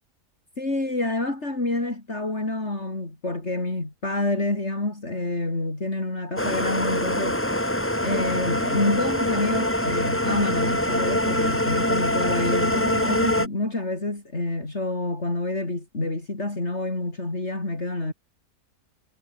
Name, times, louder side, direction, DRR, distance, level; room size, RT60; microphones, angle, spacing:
voice 1, 0.6-7.6 8.0-18.1, left 2 dB, 45° left, 5.0 m, -28 dB
sound 1, 6.4-13.5, left 1 dB, 10° left, 3.0 m, -24 dB
omnidirectional pair, 1.6 m